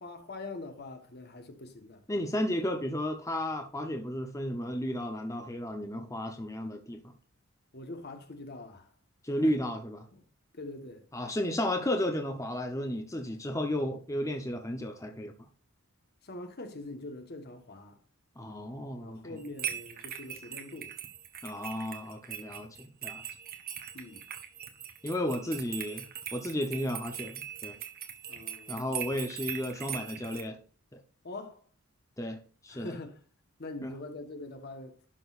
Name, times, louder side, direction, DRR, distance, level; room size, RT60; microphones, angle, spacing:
voice 1, 0.0-2.0 7.7-8.9 9.4-9.5 10.1-10.2 10.5-11.0 16.2-18.0 18.9-21.0 23.9-24.3 25.4-25.5 28.3-28.9 31.2-31.6 32.7-33.2 33.6-35.0, left 2 dB, 50° left, 1.3 m, -43 dB
voice 2, 2.1-7.0 9.2-10.0 11.1-15.3 18.4-19.4 21.4-23.2 25.0-27.7 28.7-30.6 32.2-33.0 33.8-33.9, left 1 dB, 15° left, 0.8 m, -33 dB
sound 1, 19.4-30.4, right 9 dB, 45° right, 1.2 m, -41 dB
11.5 x 6.2 x 2.5 m
head